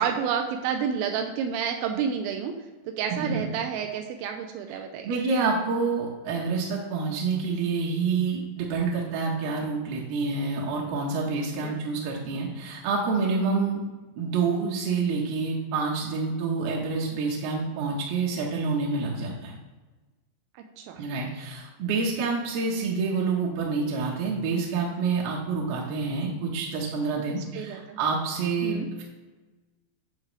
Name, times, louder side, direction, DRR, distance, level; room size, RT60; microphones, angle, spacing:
voice 1, 0.0-2.5 3.0-5.1 11.6-11.8 20.8-21.0 27.5-28.0 28.6-28.9, right 7 dB, 85° right, 4 dB, 3.3 m, -29 dB
voice 2, 3.1-3.4 4.7-4.8 5.0-13.9 14.2-19.5 21.0-29.0, right 4 dB, 70° right, -3 dB, 2.4 m, -28 dB
11.5 x 5.8 x 3.2 m, 1.2 s
omnidirectional pair, 5.8 m